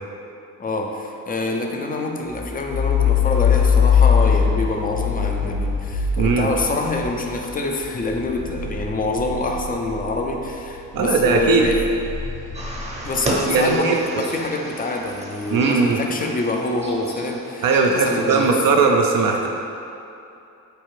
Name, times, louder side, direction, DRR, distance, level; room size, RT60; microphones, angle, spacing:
voice 1, 0.6-11.8 13.0-18.6, left 2 dB, 20° left, 2 dB, 0.4 m, -26 dB
sound 1, 2.3-10.6 11.0-13.6, left 7 dB, 75° left, 1.0 m, -22 dB
voice 2, 6.2-6.5 10.9-11.7 13.5-14.0 15.5-16.0 17.6-19.5, right 4 dB, 55° right, 1 dB, 0.5 m, -18 dB
sound 2, 12.5-18.6, right 1 dB, 15° right, 0.7 m, -33 dB
4.6 x 2.4 x 3.1 m, 2.7 s
supercardioid pair, 50°, 42 cm